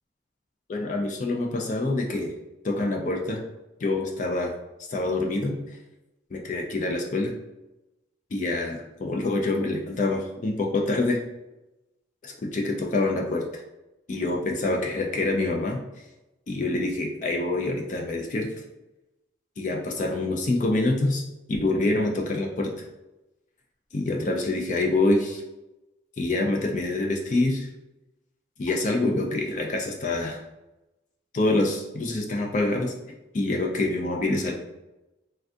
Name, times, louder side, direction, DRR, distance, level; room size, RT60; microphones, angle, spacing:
voice 1, 0.7-2.3 2.6-3.4 3.8-4.5 4.9-5.6 6.3-7.3 8.3-11.2 12.2-13.6 14.1-15.8 16.5-18.5 19.6-21.2 21.5-22.7 23.9-25.4 26.2-27.7 28.6-30.4 31.3-32.9 33.3-34.5, left 2 dB, 40° left, 1 dB, 0.3 m, -26 dB
3.3 x 2.4 x 2.5 m, 0.98 s
head